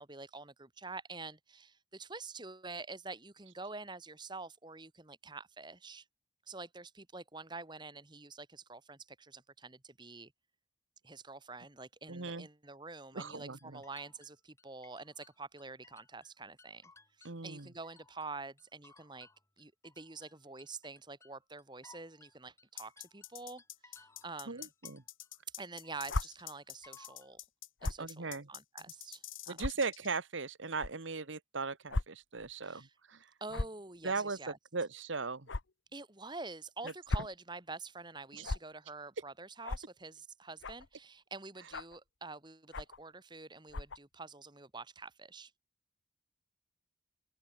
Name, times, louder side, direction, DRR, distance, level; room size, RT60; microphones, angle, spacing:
voice 1, 0.0-6.0 6.5-10.3 11.0-16.9 17.2-19.3 19.6-24.7 25.6-27.4 27.8-29.6 32.6-32.9 33.4-34.6 35.9-45.5, right 3 dB, 20° right, 1.9 m, -47 dB
voice 2, 12.1-12.5 13.1-13.8 17.2-17.7 24.5-25.0 27.8-28.5 29.5-33.3 34.0-35.5 36.8-36.9 38.3-38.5, right 4 dB, 75° right, 1.4 m, -38 dB
sound 1, 13.3-16.3 16.6-18.3 18.6-25.3 25.6-27.3, left 3 dB, 15° left, 3.6 m, -62 dB
sound 2, 22.8-30.1, left 14 dB, 90° left, 4.2 m, -47 dB
sound 3, 26.1-26.2 27.8-28.1 28.8-28.9 29.6-29.7 30.8-30.9 31.9-32.1 32.4-32.5 33.5-33.8 35.5-35.6 36.9-37.3 38.4-38.6 39.6-39.8 40.6-40.9 41.7-42.0 42.7-43.0 43.7-44.0, left 2 dB, 70° left, 1.0 m, -35 dB
head